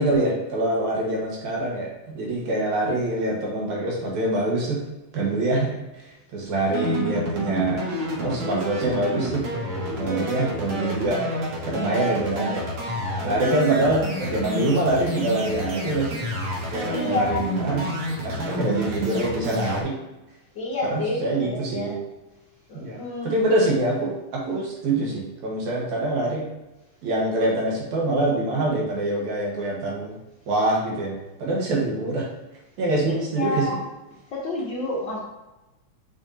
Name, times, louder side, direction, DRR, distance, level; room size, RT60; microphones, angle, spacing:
voice 1, 0.0-4.8 5.1-5.8 6.3-7.9 8.1-9.4 10.0-11.2 11.7-12.7 13.2-16.2 16.7-17.9 18.2-19.9 20.8-22.0 22.7-26.4 27.0-30.2 30.5-32.3 32.8-33.7, right 2 dB, 70° right, -3 dB, 2.8 m, -25 dB
sound 1, 6.7-19.8, equal, 55° right, 1.7 m, -29 dB
voice 2, 13.2-13.8 16.9-17.4 20.6-21.9 22.7-23.4 33.1-33.8 34.3-35.2, left 2 dB, 75° left, -5 dB, 1.0 m, -29 dB
7.6 x 5.6 x 2.8 m, 1.0 s
omnidirectional pair, 3.5 m